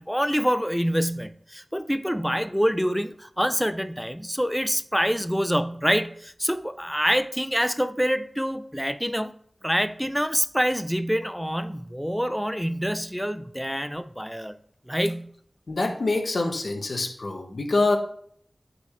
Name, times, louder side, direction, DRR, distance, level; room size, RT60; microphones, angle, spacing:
voice 1, 0.0-9.3 9.6-14.6 14.9-15.3, equal, ahead, 11 dB, 0.4 m, -26 dB
voice 2, 15.7-18.0, left 2 dB, 75° left, 4 dB, 1.0 m, -25 dB
9.3 x 3.9 x 3.1 m, 0.62 s
wide cardioid pair, 45°, 0 cm